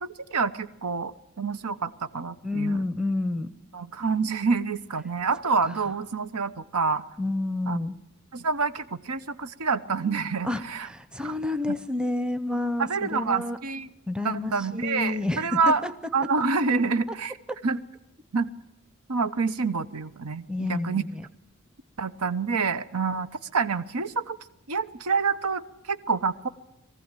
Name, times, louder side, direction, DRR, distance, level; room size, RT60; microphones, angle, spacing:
voice 1, 0.0-2.8 3.7-7.0 7.7-7.8 8.3-10.9 11.2-11.3 12.8-13.9 14.2-15.8 16.1-17.4 17.6-17.8 18.3-18.5 19.1-21.0 22.0-24.4 24.7-25.6 25.9-26.5, right 4 dB, 90° right, 12 dB, 1.0 m, -27 dB
voice 2, 2.4-3.5 7.2-8.0 10.4-13.6 14.1-15.9 20.5-21.2, left 2 dB, 5° right, 12 dB, 0.7 m, -29 dB
22.0 x 15.0 x 9.0 m, 0.89 s
head